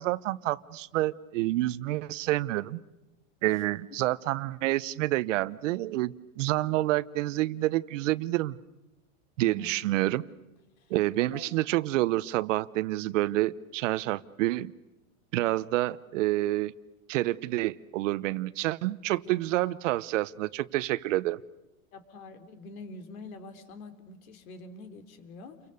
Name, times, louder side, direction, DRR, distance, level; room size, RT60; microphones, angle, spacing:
voice 1, 0.0-2.8 3.4-8.5 9.4-10.2 10.9-14.7 15.3-16.7 17.1-21.4, right 17 dB, 60° right, 17 dB, 0.9 m, -28 dB
voice 2, 9.4-9.8 10.8-11.5 19.6-19.8 21.9-25.7, left 3 dB, 75° left, 8 dB, 3.5 m, -46 dB
30.0 x 24.0 x 6.9 m, 1.0 s
supercardioid pair, 145°, 42 cm